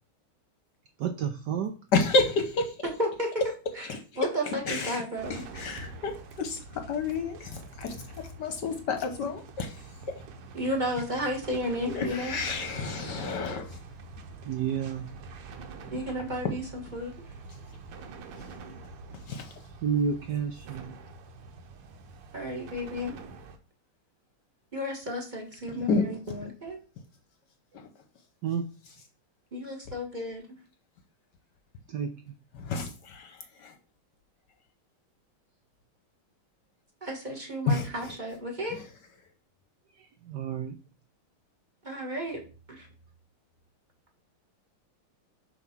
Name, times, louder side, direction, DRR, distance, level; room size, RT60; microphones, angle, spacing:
voice 1, 1.0-1.7 14.4-15.1 19.8-20.9 28.4-28.7 31.9-32.4 40.0-40.8, right 7 dB, 70° right, 6 dB, 1.1 m, -30 dB
voice 2, 1.9-2.8 3.9-4.0 4.7-5.0 5.3-8.0 8.4-9.8 11.9-13.8 16.4-16.5 19.3-19.5 25.9-26.1 27.7-27.9 32.5-33.7 37.7-38.1 38.7-38.9, left 4 dB, 65° left, 6 dB, 1.3 m, -30 dB
voice 3, 2.8-3.3 3.8-3.9 4.2-5.4 10.5-12.4 15.9-17.1 22.3-23.1 24.7-26.8 29.5-30.6 37.0-38.8 41.8-42.4 42.7-42.9, equal, 25° right, 0 dB, 1.5 m, -33 dB
sound 1, 5.2-23.6, right 3 dB, 85° right, 1.8 m, -45 dB
7.0 x 3.6 x 5.9 m, 0.36 s
omnidirectional pair, 2.3 m